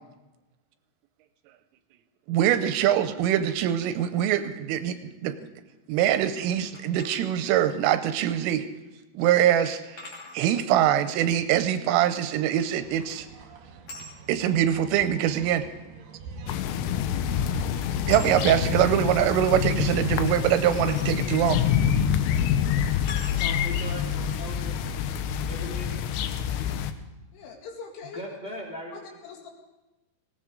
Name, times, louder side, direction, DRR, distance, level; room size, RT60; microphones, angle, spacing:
voice 1, 2.3-5.0 5.2-5.4 5.9-8.7 9.1-13.3 14.3-15.6 18.1-21.6, right 11 dB, 85° right, 10 dB, 3.1 m, -23 dB
sound 1, 6.7-7.2 8.7-8.8 10.0-10.4 12.6-13.0 13.9-14.1 15.3-15.4 16.7-16.9 17.2-17.4 18.1-18.4 20.9-21.1 21.9-22.1 23.1-23.4, left 2 dB, 40° left, 3.3 m, -42 dB
sound 2, 12.7-19.7, right 4 dB, 65° right, 2.5 m, -43 dB
sound 3, 16.5-26.9, left 9 dB, 85° left, 2.5 m, -26 dB
voice 2, 23.3-25.1 25.5-26.1 26.6-26.7 28.0-29.2, equal, 25° left, -2 dB, 1.3 m, -40 dB
voice 3, 27.3-28.2 28.9-29.5, left 5 dB, 70° left, 1 dB, 4.2 m, -42 dB
19.0 x 17.5 x 3.8 m, 1.1 s
omnidirectional pair, 6.0 m